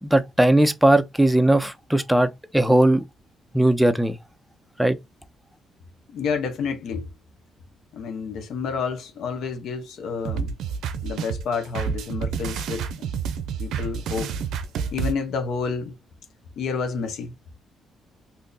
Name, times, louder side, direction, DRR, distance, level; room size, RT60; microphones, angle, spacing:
voice 1, 0.0-3.0 3.5-4.2 4.8-5.0, right 1 dB, 5° right, 0.5 m, -19 dB
voice 2, 6.1-7.1 7.9-10.5 11.0-13.1 13.6-14.4 14.9-15.9 16.6-17.3, left 5 dB, 75° left, 0.8 m, -29 dB
sound 1, 10.3-15.1, right 7 dB, 80° right, 0.5 m, -29 dB
2.7 x 2.5 x 3.7 m
cardioid pair, 90°, 0 cm